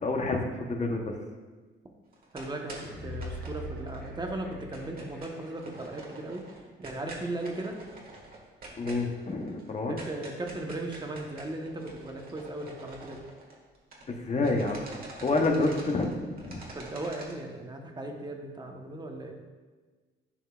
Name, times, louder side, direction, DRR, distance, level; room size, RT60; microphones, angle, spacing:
voice 1, 0.0-1.1 8.8-10.0 14.1-14.9 15.2-16.6, left 2 dB, 35° left, 3 dB, 1.0 m, -28 dB
sound 1, 2.1-4.3 4.5-14.1 14.4-17.3, right 2 dB, 50° right, 1.7 m, -46 dB
voice 2, 2.3-6.4 6.8-7.8 9.9-13.2 16.7-19.4, right 2 dB, 20° right, 2 dB, 1.1 m, -37 dB
sound 2, 2.7-5.5 5.8-5.9, left 1 dB, 5° left, 2.3 m, -41 dB
11.0 x 5.4 x 2.4 m, 1.4 s
cardioid pair, 90°, 20 cm